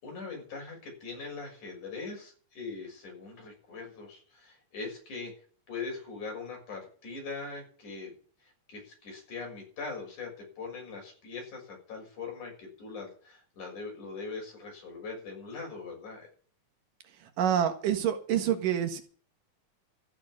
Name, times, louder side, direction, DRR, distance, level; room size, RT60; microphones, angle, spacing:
voice 1, 0.0-5.3 5.7-8.1 8.4-16.3, left 4 dB, 70° left, 7.9 m, -41 dB
voice 2, 17.2-19.0, right 9 dB, 90° right, 3.2 m, -27 dB
14.5 x 6.8 x 9.8 m
omnidirectional pair, 3.6 m